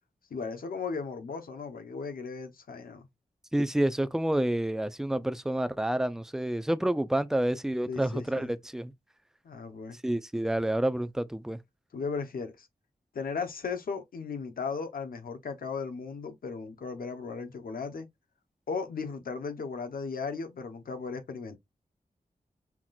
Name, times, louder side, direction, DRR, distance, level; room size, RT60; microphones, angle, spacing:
voice 1, 0.3-3.1 7.9-8.5 9.4-10.0 11.9-12.7 13.1-18.1 18.7-21.6, left 5 dB, 80° left, 0.9 m, -36 dB
voice 2, 3.5-8.9 10.0-11.6, right 1 dB, 5° right, 0.4 m, -29 dB
5.8 x 2.4 x 2.4 m
wide cardioid pair, 75°, 15 cm